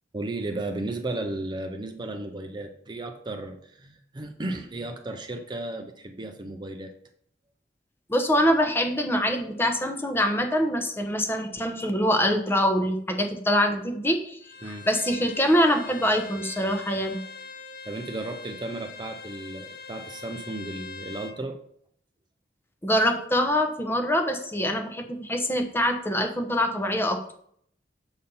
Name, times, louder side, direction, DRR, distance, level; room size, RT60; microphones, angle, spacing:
voice 1, 0.1-6.9 14.6-14.9 17.8-21.6, right 2 dB, 25° right, 5 dB, 0.6 m, -34 dB
voice 2, 8.1-14.4 14.7-17.2 22.8-27.3, equal, 15° left, 5 dB, 0.8 m, -24 dB
Bowed string instrument, 14.4-21.4, left 5 dB, 60° left, 0.7 m, -43 dB
6.8 x 4.2 x 5.4 m, 0.65 s
head